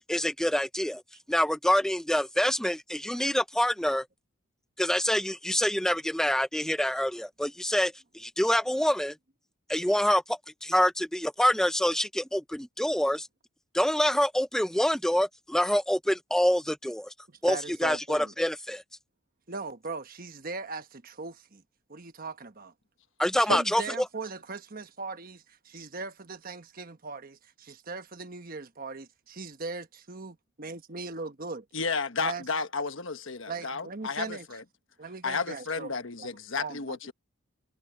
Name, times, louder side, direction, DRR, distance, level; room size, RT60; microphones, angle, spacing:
voice 1, 0.1-1.0 1.3-4.1 4.8-9.2 9.7-13.3 13.7-17.1 17.4-18.8 23.2-24.1, equal, ahead, 0.5 m, -26 dB
voice 2, 17.3-18.3 19.5-21.6 21.9-22.7 23.3-31.6 32.2-32.4 33.5-34.5 35.0-35.9 36.2-36.3 36.6-37.0, right 4 dB, 45° right, 1.2 m, -39 dB
voice 3, 31.7-34.6 35.2-37.1, left 4 dB, 65° left, 1.2 m, -32 dB
head